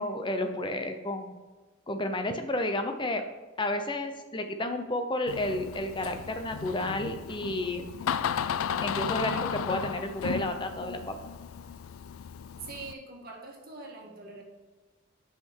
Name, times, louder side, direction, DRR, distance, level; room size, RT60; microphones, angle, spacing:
voice 1, 0.0-1.3 1.9-3.2 3.6-7.9 8.8-11.2, left 1 dB, 25° left, 7 dB, 0.7 m, -31 dB
Door, 5.3-12.9, left 7 dB, 85° left, 0.4 m, -34 dB
voice 2, 12.7-14.4, right 3 dB, 45° right, 0 dB, 1.7 m, -44 dB
5.9 x 5.8 x 6.2 m, 1.2 s
head